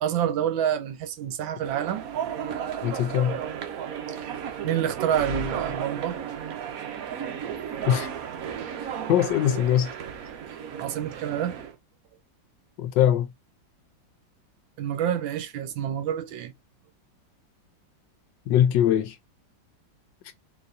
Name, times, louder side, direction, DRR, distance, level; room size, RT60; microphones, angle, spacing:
voice 1, 0.0-2.1 4.6-6.2 10.8-11.6 14.8-16.5, right 10 dB, 80° right, 1.4 m, -27 dB
sound 1, 1.6-11.8, right 7 dB, 60° right, 1.0 m, -34 dB
voice 2, 2.8-3.4 7.9-8.1 9.1-9.9 12.8-13.3 18.5-19.2, left 10 dB, 75° left, 1.2 m, -21 dB
4.0 x 3.1 x 2.6 m
omnidirectional pair, 2.1 m